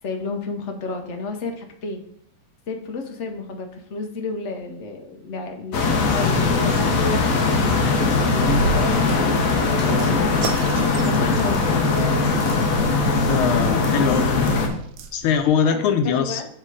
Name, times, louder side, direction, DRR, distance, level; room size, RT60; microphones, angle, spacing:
voice 1, 0.0-2.0 2.7-7.4 8.3-10.2 11.0-11.9 15.6-16.5, left 3 dB, 70° left, 4 dB, 0.6 m, -31 dB
sound 1, 5.7-14.7, left 3 dB, 55° left, 1.1 m, -20 dB
sound 2, 8.4-15.6, right 3 dB, 85° right, 1.5 m, -33 dB
voice 2, 13.3-14.6 15.1-16.4, left 7 dB, 85° left, 7 dB, 1.5 m, -22 dB
6.7 x 3.7 x 4.8 m, 0.67 s
omnidirectional pair, 2.3 m